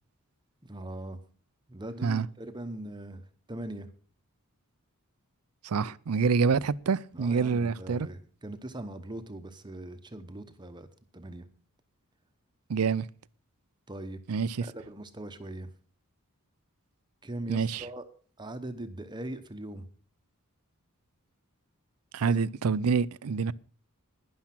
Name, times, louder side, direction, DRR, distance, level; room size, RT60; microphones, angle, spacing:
voice 1, 0.6-1.2 1.7-3.9 7.1-10.9 11.1-11.5 13.9-14.2 14.6-15.7 17.2-18.0 18.4-19.9 22.2-22.4, right 1 dB, 20° right, 0.9 m, -40 dB
voice 2, 5.6-8.1 12.7-13.1 14.3-14.6 17.5-17.9 22.1-23.5, right 5 dB, 80° right, 0.5 m, -27 dB
12.0 x 10.5 x 6.0 m
head